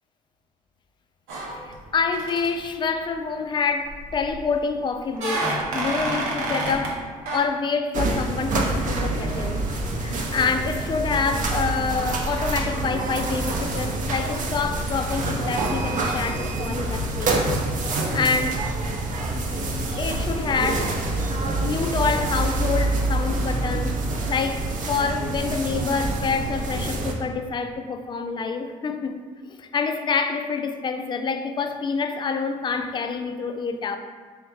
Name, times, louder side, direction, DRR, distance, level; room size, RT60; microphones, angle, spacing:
sound 1, 1.3-1.9 2.1-2.5 3.9-4.4 5.1-7.0 7.3-7.4, right 2 dB, 90° right, 0.7 m, -28 dB
voice 1, 1.7-7.1 7.3-9.7 10.0-17.4 18.1-18.7 19.3-19.5 20.0-21.2 21.6-29.2 29.5-34.0, left 5 dB, 30° left, 0.4 m, -27 dB
sound 2, 7.9-27.1, right 2 dB, 50° right, 0.6 m, -26 dB
3.4 x 3.1 x 3.2 m
supercardioid pair, 70°, 17 cm